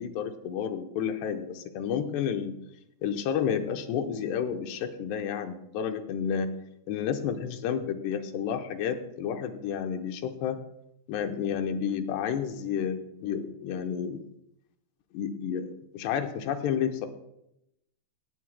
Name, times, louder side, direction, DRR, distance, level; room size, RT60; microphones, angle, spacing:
voice 1, 0.0-2.6 3.0-6.5 6.9-10.6 11.1-14.2 15.1-17.1, left 8 dB, 75° left, 6 dB, 2.8 m, -31 dB
17.0 x 14.5 x 2.2 m, 0.81 s
omnidirectional pair, 5.3 m